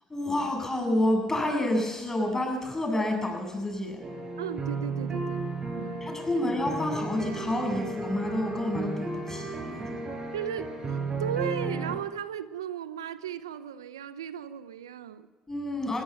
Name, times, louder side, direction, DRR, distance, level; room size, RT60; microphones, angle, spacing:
voice 1, 0.1-4.0 6.0-10.1 15.5-16.0, left 1 dB, 20° left, 3 dB, 7.9 m, -29 dB
sound 1, 4.0-12.0, right 3 dB, 35° right, 6.0 m, -34 dB
voice 2, 4.4-6.4 10.3-15.3, right 9 dB, 90° right, 14 dB, 0.7 m, -36 dB
21.5 x 17.0 x 7.1 m, 1.2 s
hypercardioid pair, 60°, 2 cm